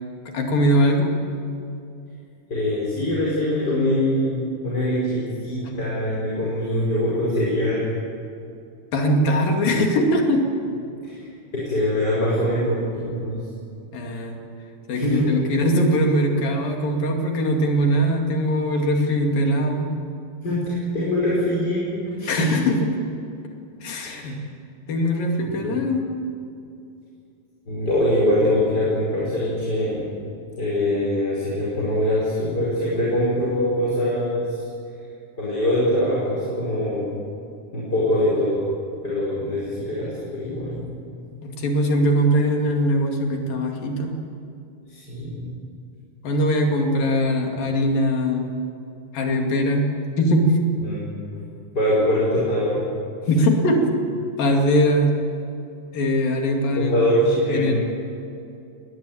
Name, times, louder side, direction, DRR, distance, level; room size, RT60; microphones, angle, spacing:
voice 1, 0.3-1.1 8.9-10.5 13.9-14.4 14.9-20.0 22.3-22.8 23.8-24.4 24.9-26.1 41.4-44.1 46.2-48.5 49.1-50.6 53.3-55.2 55.9-56.9 57.5-57.7, equal, 65° left, 2 dB, 4.1 m, -21 dB
voice 2, 2.5-8.0 11.0-11.2 11.5-13.4 14.9-15.4 20.4-22.6 24.0-24.3 25.4-25.8 27.7-30.1 30.6-34.5 35.4-37.2 37.7-38.6 39.0-40.9 44.9-45.5 50.8-51.4 51.7-52.8 56.8-57.7, left 1 dB, 25° left, -7 dB, 5.7 m, -23 dB
20.5 x 19.5 x 8.9 m, 2.6 s
omnidirectional pair, 4.5 m